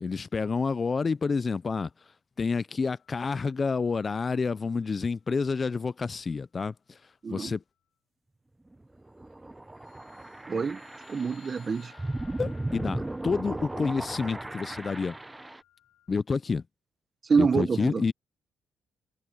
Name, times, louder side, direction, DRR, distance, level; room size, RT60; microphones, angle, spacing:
voice 1, 0.0-1.9 2.4-7.0 7.3-7.6 12.4-15.1 16.1-16.6 17.4-18.1, left 4 dB, 35° left, 0.5 m, -29 dB
sound 1, 3.0-3.4 3.8-4.1 9.6-16.1, left 12 dB, 80° left, 3.6 m, -60 dB
sound 2, 8.7-15.6, right 2 dB, 15° right, 0.8 m, -37 dB
voice 2, 10.5-10.8 11.1-11.9 17.3-18.0, right 5 dB, 40° right, 1.1 m, -26 dB
cardioid pair, 90°, 0 cm